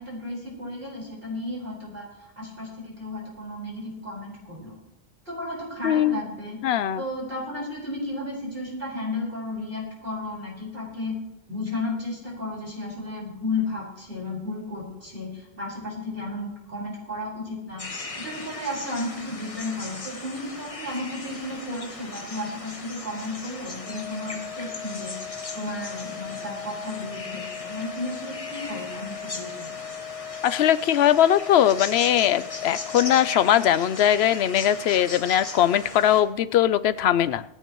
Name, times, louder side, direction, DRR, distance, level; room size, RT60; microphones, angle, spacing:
voice 1, 0.0-2.1 2.4-4.8 5.3-6.6 7.0-11.2 11.5-25.2 25.5-29.8, left 2 dB, 60° right, -4 dB, 5.2 m, -33 dB
voice 2, 5.8-6.2 6.6-7.0 30.4-37.4, left 11 dB, 75° left, 14 dB, 0.8 m, -20 dB
sound 1, 17.8-36.2, left 2 dB, 35° left, 1.3 m, -38 dB
sound 2, 23.8-33.8, left 9 dB, 5° left, 1.3 m, -39 dB
26.5 x 9.3 x 3.1 m, 0.88 s
omnidirectional pair, 1.1 m